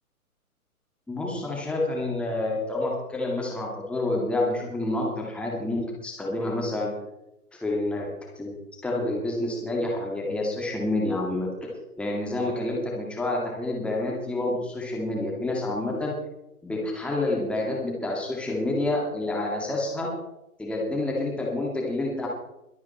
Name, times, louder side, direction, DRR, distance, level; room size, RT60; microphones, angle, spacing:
voice 1, 1.1-6.9 7.5-8.5 8.8-11.5 12.0-16.1 16.6-20.1 20.6-22.3, left 2 dB, ahead, -2 dB, 2.2 m, -28 dB
22.5 x 8.5 x 4.4 m, 0.87 s
hypercardioid pair, 140°, 45 cm